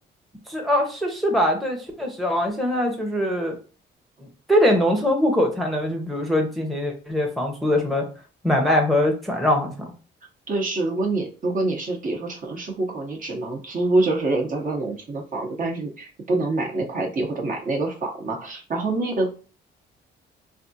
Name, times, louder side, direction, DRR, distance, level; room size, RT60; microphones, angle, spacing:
voice 1, 0.5-3.6 4.2-8.1 8.4-9.7, left 1 dB, ahead, 1 dB, 0.7 m, -22 dB
voice 2, 10.5-19.3, right 2 dB, 40° right, 0 dB, 0.8 m, -26 dB
3.3 x 2.3 x 2.7 m, 0.36 s
cardioid pair, 90°, 20 cm